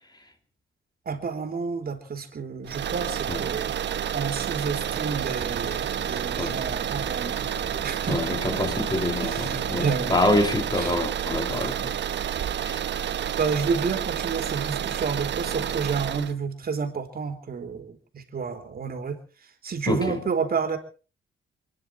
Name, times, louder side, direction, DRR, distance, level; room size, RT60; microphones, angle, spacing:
voice 1, 1.0-3.7 4.1-7.4 7.8-8.6 9.2-10.2 10.7-10.9 13.4-19.2 19.6-20.8, right 5 dB, 50° right, 3.2 m, -30 dB
sound 1, 2.7-16.3, right 9 dB, 65° right, 1.1 m, -29 dB
sound 2, 4.8-10.0, left 4 dB, 50° left, 6.4 m, -46 dB
voice 2, 8.1-11.9 12.6-12.8 19.9-20.2, left 2 dB, 20° left, 2.8 m, -26 dB
28.5 x 10.5 x 4.6 m
cardioid pair, 95°, 20 cm